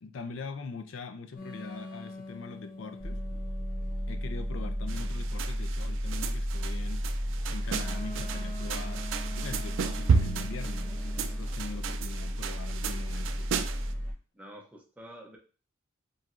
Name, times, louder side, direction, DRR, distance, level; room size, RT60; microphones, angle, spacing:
voice 1, 0.0-3.2 4.1-9.1 9.4-13.6, left 4 dB, 75° left, 0.4 m, -42 dB
sound 1, 1.4-5.4 7.7-11.4, left 1 dB, 45° left, 0.7 m, -45 dB
sound 2, 3.0-14.1, equal, 10° left, 1.0 m, -33 dB
sound 3, 4.9-13.9, right 5 dB, 70° right, 0.3 m, -33 dB
voice 2, 14.3-15.4, equal, 5° right, 0.6 m, -48 dB
4.5 x 3.1 x 2.5 m
head